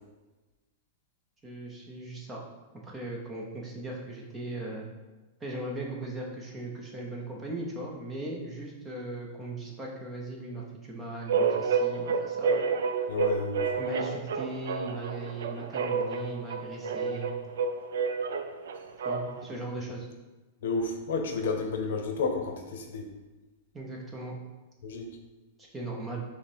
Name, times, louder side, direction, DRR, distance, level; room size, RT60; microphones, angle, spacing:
voice 1, 1.4-2.4 2.8-4.9 5.4-12.6 13.8-17.4 19.0-20.1 23.7-24.3 25.6-26.2, right 2 dB, 10° right, -2 dB, 0.6 m, -38 dB
sound 1, 11.3-19.5, right 5 dB, 85° right, 0.4 m, -30 dB
voice 2, 13.1-13.7 20.6-23.0 24.8-25.1, left 4 dB, 70° left, 4 dB, 0.7 m, -31 dB
5.7 x 2.1 x 4.3 m, 1.2 s
supercardioid pair, 170°, 0 cm